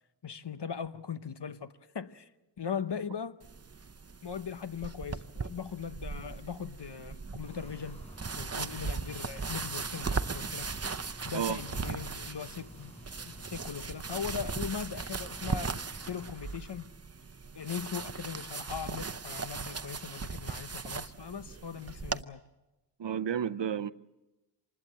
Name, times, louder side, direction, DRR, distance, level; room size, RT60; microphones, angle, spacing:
voice 1, 0.2-2.3 2.6-3.4 4.2-8.0 8.3-10.7 11.2-12.9 13.2-16.9 17.5-22.4, left 7 dB, 70° left, 1.0 m, -39 dB
sound 1, 3.4-22.2, right 4 dB, 35° right, 0.8 m, -38 dB
sound 2, 7.4-16.3, equal, 15° left, 5.5 m, -51 dB
voice 2, 23.0-23.9, right 8 dB, 80° right, 0.7 m, -31 dB
26.0 x 20.5 x 7.6 m
wide cardioid pair, 60°, 42 cm